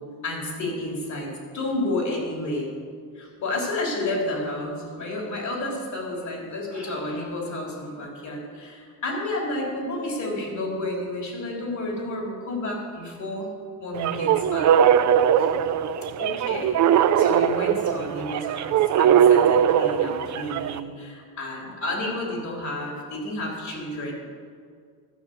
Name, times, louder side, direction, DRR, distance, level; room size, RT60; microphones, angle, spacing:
voice 1, 0.2-2.7 3.2-13.5 13.8-14.7 15.4-15.7 16.2-24.1, left 1 dB, 50° left, -1 dB, 3.5 m, -31 dB
sound 1, 14.0-20.8, right 9 dB, 50° right, 0.5 m, -20 dB
13.0 x 6.1 x 7.8 m, 2.1 s
cardioid pair, 125°, 36 cm